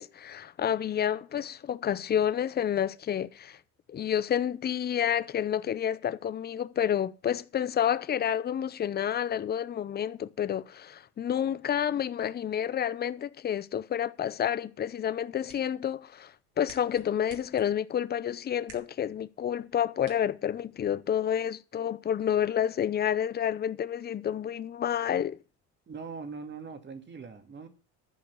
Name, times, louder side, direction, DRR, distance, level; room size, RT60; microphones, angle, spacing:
voice 1, 0.0-3.6 3.9-25.4, left 9 dB, 30° left, 0.7 m, -29 dB
sound 1, 15.1-21.1, right 5 dB, 70° right, 3.2 m, -57 dB
voice 2, 25.9-27.7, right 5 dB, 35° right, 2.3 m, -41 dB
11.5 x 5.3 x 8.3 m
supercardioid pair, 100°, 33 cm